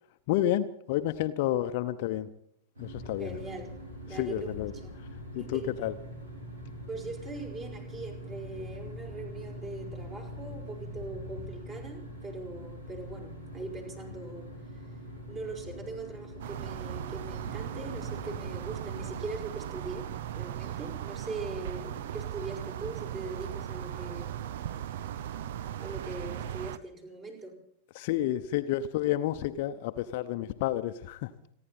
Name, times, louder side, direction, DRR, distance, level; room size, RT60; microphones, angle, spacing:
voice 1, 0.3-2.3 2.8-3.3 4.2-4.7 5.3-5.9 27.9-31.3, left 12 dB, 50° left, 9 dB, 0.9 m, -30 dB
sound 1, 2.7-19.3, equal, 75° right, 6.2 m, -43 dB
voice 2, 3.2-3.8 4.0-5.0 5.3-5.7 6.9-14.8 15.3-24.4 25.8-27.6, right 3 dB, 25° right, 2 dB, 5.1 m, -41 dB
sound 2, 16.4-26.8, right 11 dB, 55° right, 0.7 m, -38 dB
29.5 x 11.0 x 4.2 m, 0.73 s
figure-of-eight pair, 90°, 0 cm